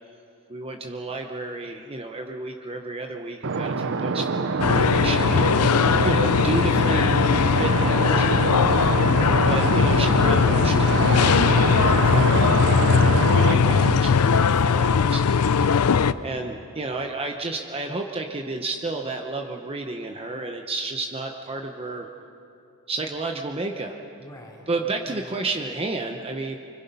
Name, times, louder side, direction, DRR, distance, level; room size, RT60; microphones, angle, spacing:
voice 1, 0.5-5.7 6.0-7.3 7.6-8.3 9.4-15.8 16.2-22.1 22.9-24.0 24.7-26.6, right 3 dB, 25° right, 3 dB, 0.9 m, -31 dB
sound 1, 3.4-14.0, right 4 dB, 60° right, 0.7 m, -26 dB
sound 2, 4.6-16.1, left 6 dB, 80° left, 0.5 m, -19 dB
voice 2, 8.7-9.1 14.2-15.0 15.4-16.2 24.2-24.7 25.1-25.3, equal, 15° left, -2 dB, 3.3 m, -42 dB
25.0 x 25.0 x 5.5 m, 2.7 s
head